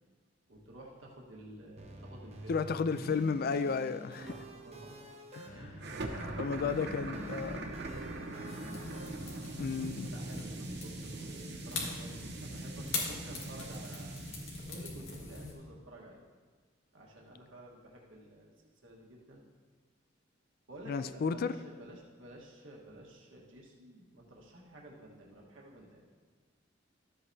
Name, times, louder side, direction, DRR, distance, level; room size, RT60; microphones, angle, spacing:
voice 1, 0.5-2.6 4.2-5.1 5.5-7.0 8.2-9.1 10.1-16.2 16.9-18.5 18.8-19.4 20.7-26.0, right 1 dB, 85° right, -2 dB, 1.5 m, -52 dB
sound 1, 1.8-9.2, right 1 dB, 35° right, 0.9 m, -48 dB
voice 2, 2.5-4.3 5.3-5.6 6.1-7.7 9.6-10.1 20.9-21.5, left 5 dB, 50° left, 12 dB, 0.4 m, -33 dB
sound 2, 5.8-14.9, right 2 dB, 60° right, 0.8 m, -42 dB
sound 3, 8.5-15.5, left 3 dB, 85° left, 1.8 m, -42 dB
13.0 x 7.9 x 2.8 m, 1.4 s
head